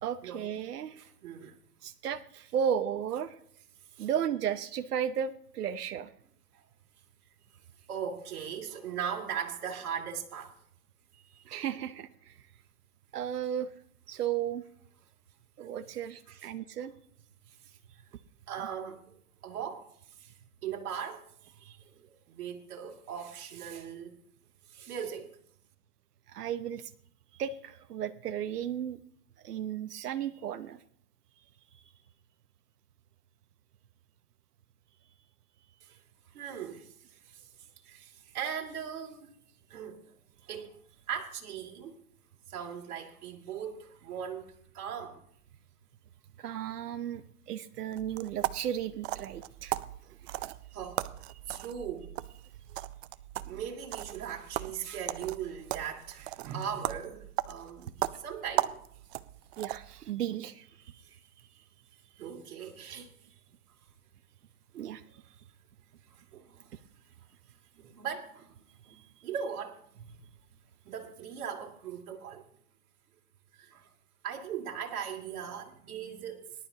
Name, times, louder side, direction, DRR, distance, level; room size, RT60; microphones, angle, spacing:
voice 1, 0.0-1.1 1.8-3.4 4.0-6.1 11.3-12.3 13.1-13.7 14.1-14.6 15.6-16.9 21.6-21.8 26.3-26.9 27.3-29.0 29.4-30.8 31.7-31.9 46.4-49.8 50.1-50.4 51.5-51.6 59.6-61.0 64.7-65.2 68.9-69.2, right 9 dB, 90° right, 0.9 m, -35 dB
voice 2, 1.0-1.6 4.0-4.1 6.5-6.7 7.9-10.5 16.3-16.5 16.8-16.9 18.5-19.2 19.4-19.9 20.2-20.3 20.6-21.2 21.9-24.2 24.7-25.3 35.9-36.0 36.3-36.9 37.3-37.4 37.8-39.3 39.7-40.1 40.5-40.8 41.1-42.0 42.5-45.2 50.7-51.1 51.5-52.1 53.4-57.9 58.2-58.8 62.2-63.1 66.1-66.8 67.7-68.5 68.8-70.2 70.8-72.4 73.6-73.9 74.2-76.5, right 8 dB, 70° right, 2.6 m, -39 dB
sound 1, 47.9-60.0, right 15 dB, 45° right, 0.7 m, -37 dB
19.5 x 11.5 x 2.9 m
hypercardioid pair, 135°, 45 cm